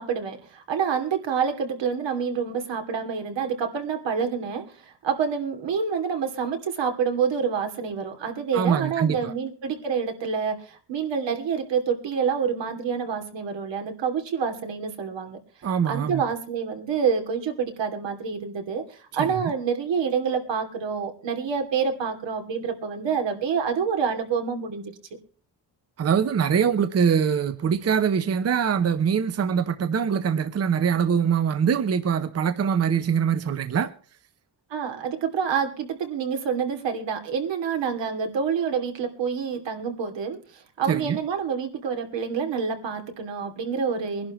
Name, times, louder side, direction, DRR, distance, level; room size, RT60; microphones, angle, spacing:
voice 1, 0.0-15.4 15.9-24.9 34.7-44.3, right 6 dB, 80° right, 2.8 m, -27 dB
voice 2, 8.5-9.3 15.6-16.2 19.2-19.3 26.0-33.9 40.9-41.2, right 7 dB, 35° right, 0.7 m, -23 dB
23.0 x 11.5 x 3.1 m
wide cardioid pair, 155°, 43 cm